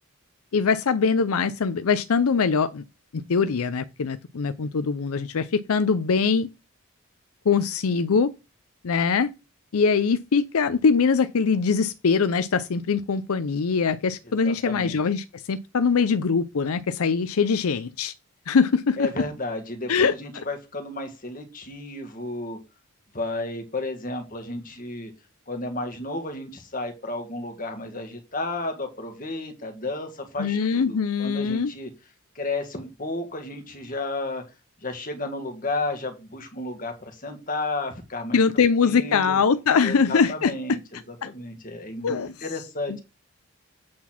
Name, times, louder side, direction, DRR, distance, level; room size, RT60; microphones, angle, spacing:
voice 1, 0.5-2.8 3.1-6.5 7.5-8.3 8.8-9.3 9.7-18.1 18.5-19.1 19.9-20.1 30.4-31.7 38.3-40.8 41.2-41.3 42.0-42.3, left 5 dB, 80° left, 0.5 m, -22 dB
voice 2, 14.2-15.0 19.0-22.6 23.1-25.1 25.5-31.9 32.4-34.4 34.8-39.4 39.8-43.0, left 2 dB, 40° left, 1.7 m, -32 dB
8.5 x 4.0 x 5.9 m
head